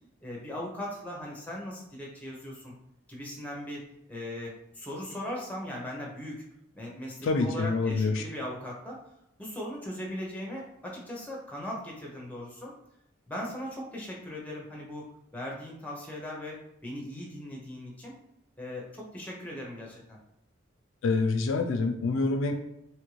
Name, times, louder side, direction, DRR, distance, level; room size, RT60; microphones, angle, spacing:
voice 1, 0.2-2.7 3.1-6.4 6.7-9.0 9.4-12.7 13.3-15.1 15.3-16.6 16.8-18.1 18.6-20.2, left 1 dB, 5° left, -2 dB, 0.6 m, -39 dB
voice 2, 7.2-8.2 21.0-22.5, left 3 dB, 65° left, 5 dB, 0.3 m, -26 dB
3.0 x 2.4 x 3.1 m, 0.81 s
head